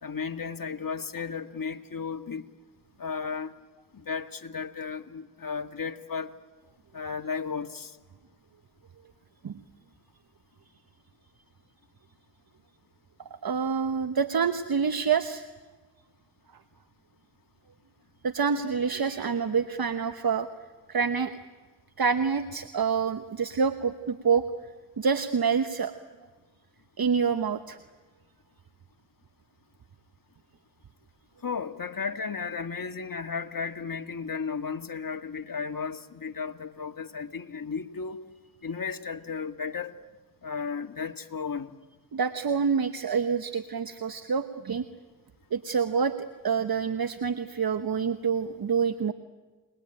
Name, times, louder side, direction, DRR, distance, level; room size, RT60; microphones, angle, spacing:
voice 1, 0.0-2.5 3.0-3.5 3.9-6.3 6.9-8.0 31.4-38.2 38.6-40.0 40.4-41.7, left 5 dB, 45° left, 6 dB, 1.8 m, -34 dB
voice 2, 13.3-15.4 18.2-20.5 20.9-21.3 22.0-24.4 25.0-25.9 27.0-27.8 42.1-44.8 45.5-46.1 46.4-49.1, right 6 dB, 50° right, 9 dB, 1.2 m, -27 dB
30.0 x 21.0 x 9.0 m, 1.3 s
cardioid pair, 45°, 45 cm